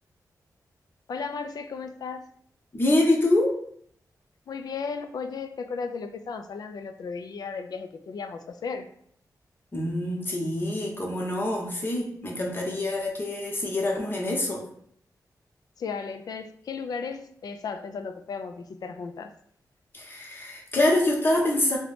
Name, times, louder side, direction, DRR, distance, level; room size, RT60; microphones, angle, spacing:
voice 1, 1.1-2.2 4.5-8.9 15.8-19.3, left 5 dB, 70° left, 7 dB, 0.4 m, -35 dB
voice 2, 2.7-3.5 9.7-14.6 19.9-21.8, left 1 dB, 30° left, -1 dB, 0.9 m, -25 dB
2.9 x 2.2 x 4.1 m, 0.65 s
wide cardioid pair, 90°, 7 cm